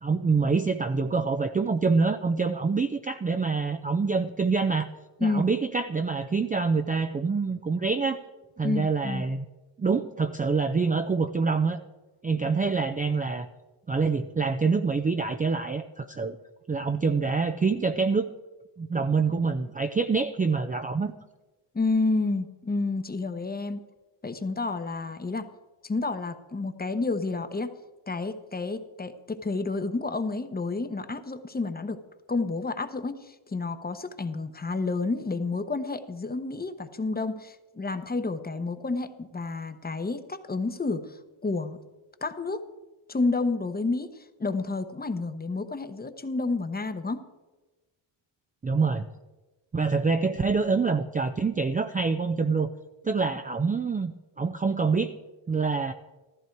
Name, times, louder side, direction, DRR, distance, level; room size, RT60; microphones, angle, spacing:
voice 1, 0.0-4.9 5.2-8.2 8.6-9.4 9.8-11.8 12.2-13.5 13.9-16.4 16.7-18.3 18.8-21.1 48.6-49.1 49.7-52.7 53.0-55.1 55.5-55.9, right 4 dB, 15° right, 7 dB, 0.5 m, -26 dB
voice 2, 8.6-9.2 21.7-23.8 24.2-25.5 25.8-27.7 28.1-32.0 32.3-41.2 41.4-41.8 42.2-42.6 43.1-44.1 44.4-47.2, left 3 dB, 20° left, 10 dB, 0.9 m, -30 dB
14.0 x 14.0 x 4.6 m, 1.1 s
cardioid pair, 110°, 49 cm